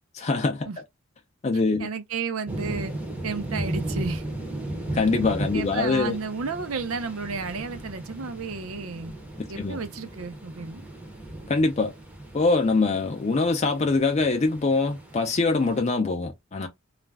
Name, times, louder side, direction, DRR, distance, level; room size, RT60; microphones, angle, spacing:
voice 1, 0.1-0.7 1.4-1.9 4.9-6.2 9.4-9.8 11.5-11.9 12.3-16.7, left 3 dB, 30° left, 0.4 m, -23 dB
voice 2, 1.8-2.9 3.2-4.2 5.5-9.1 9.5-10.8, right 4 dB, 80° right, 0.6 m, -32 dB
sound 1, 2.5-15.8, right 1 dB, 5° right, 0.6 m, -36 dB
2.4 x 2.1 x 3.2 m
head